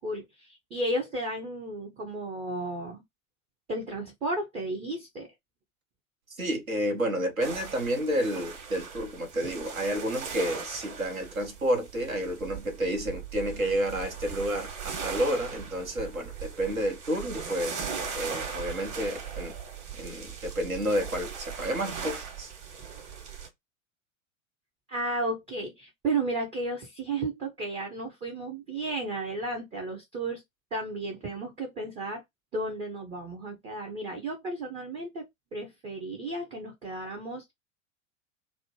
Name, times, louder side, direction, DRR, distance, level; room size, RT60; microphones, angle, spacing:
voice 1, 0.0-3.0 3.7-5.3 24.9-30.4 30.7-32.2 32.5-37.5, right 2 dB, 15° right, 0.4 m, -33 dB
voice 2, 6.4-17.9 18.2-19.5 20.0-22.5, equal, 85° right, 1.0 m, -30 dB
sound 1, 7.4-23.5, right 6 dB, 40° right, 1.1 m, -39 dB
3.0 x 2.0 x 2.9 m
figure-of-eight pair, 85°, 40 cm